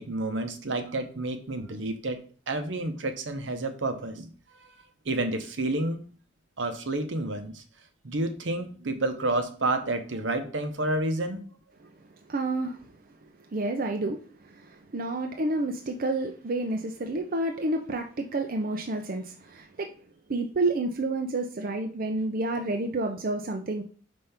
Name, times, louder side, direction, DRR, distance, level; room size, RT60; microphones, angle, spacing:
voice 1, 0.0-4.7 5.0-6.1 6.6-7.6 8.0-11.4, right 2 dB, 75° right, 7 dB, 0.9 m, -30 dB
voice 2, 12.3-12.9 13.5-19.9 20.3-23.8, right 2 dB, 50° right, 4 dB, 0.6 m, -29 dB
5.3 x 3.4 x 5.6 m, 0.40 s
head